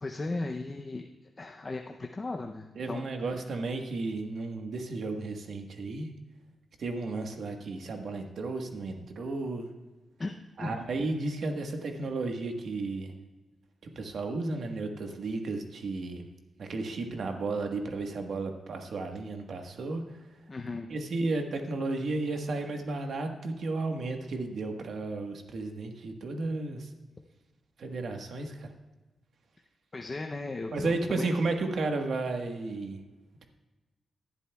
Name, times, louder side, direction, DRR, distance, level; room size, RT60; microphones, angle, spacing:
voice 1, 0.0-1.1 1.4-3.1 10.2-10.8 20.5-20.9 29.9-31.3, left 2 dB, 25° left, 3 dB, 0.6 m, -36 dB
voice 2, 2.7-6.1 6.8-9.7 10.6-13.1 13.8-16.3 16.6-20.4 20.9-26.9 27.8-28.7 30.7-33.0, right 3 dB, 65° right, 4 dB, 1.3 m, -33 dB
18.5 x 11.0 x 2.3 m, 1.2 s
wide cardioid pair, 150°, 0 cm